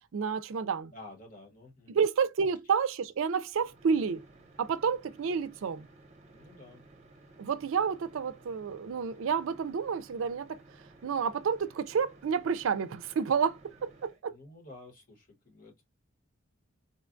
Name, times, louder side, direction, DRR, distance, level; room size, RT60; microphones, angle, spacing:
voice 1, 0.1-0.9 1.9-4.2 4.6-5.9 7.4-10.6 11.0-14.4, right 6 dB, 75° right, 0.4 m, -30 dB
voice 2, 0.9-2.0 6.3-6.8 14.3-15.8, left 2 dB, 40° left, 1.1 m, -51 dB
sound 1, 3.5-14.2, right 2 dB, 30° right, 0.7 m, -56 dB
4.0 x 2.2 x 2.5 m
head